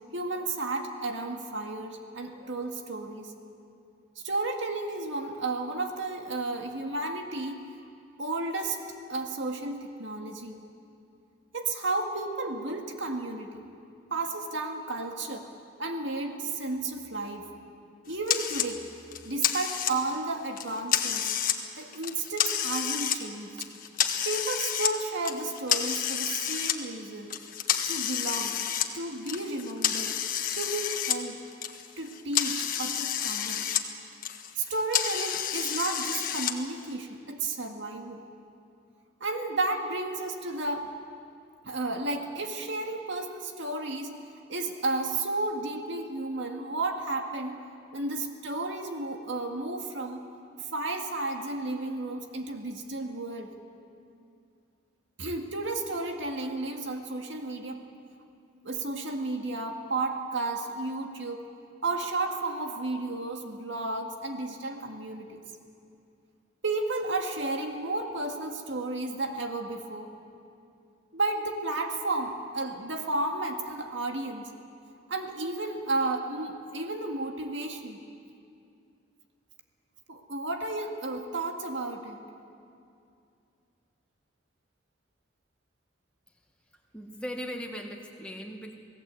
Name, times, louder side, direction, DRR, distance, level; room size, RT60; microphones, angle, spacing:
voice 1, 0.1-3.3 4.2-7.6 8.2-8.8 9.1-10.6 11.5-13.7 14.1-15.5 15.8-17.5 18.1-18.8 19.2-21.3 21.8-23.6 24.2-27.3 27.9-28.6 28.9-30.1 30.5-31.4 32.0-33.6 34.6-38.2 39.2-40.9 41.6-44.1 44.5-47.6 47.9-50.2 50.6-53.5 55.2-57.8 58.6-61.4 61.8-65.4 66.6-70.1 71.1-74.5 75.1-78.0 80.1-82.2, right 2 dB, 65° right, 3 dB, 2.0 m, -32 dB
sound 1, 18.3-18.7 19.1-20.2 20.6-21.6 21.9-23.2 23.6-24.9 25.3-26.8 27.3-31.2 31.5-33.8 34.1-36.5, left 9 dB, 45° left, 1.4 m, -29 dB
voice 2, 86.9-88.7, equal, 5° left, 1 dB, 1.9 m, -38 dB
28.0 x 18.0 x 8.4 m, 2.5 s
head